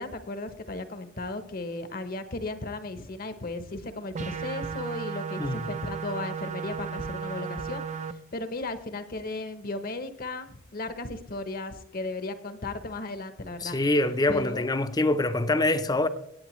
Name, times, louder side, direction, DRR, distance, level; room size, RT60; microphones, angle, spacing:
voice 1, 0.0-7.8 8.3-13.8 14.3-14.7, left 2 dB, 45° left, 0.8 m, -35 dB
sound 1, 4.1-8.1, right 6 dB, 35° right, 0.4 m, -35 dB
voice 2, 13.6-16.1, left 2 dB, 20° left, 0.6 m, -25 dB
17.5 x 8.9 x 3.1 m
head